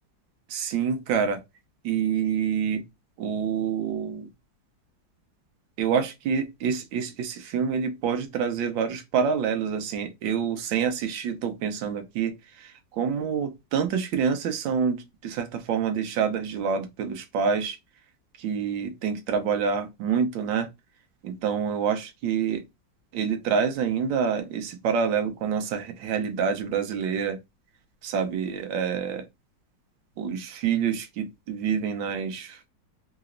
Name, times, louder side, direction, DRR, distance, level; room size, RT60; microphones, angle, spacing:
voice 1, 0.5-1.4 1.8-2.8 3.2-4.3 5.8-17.8 18.4-20.7 21.2-22.6 23.1-27.4 28.0-29.2 30.2-32.6, right 6 dB, 80° right, 1.5 m, -27 dB
3.9 x 3.0 x 2.5 m
omnidirectional pair, 2.0 m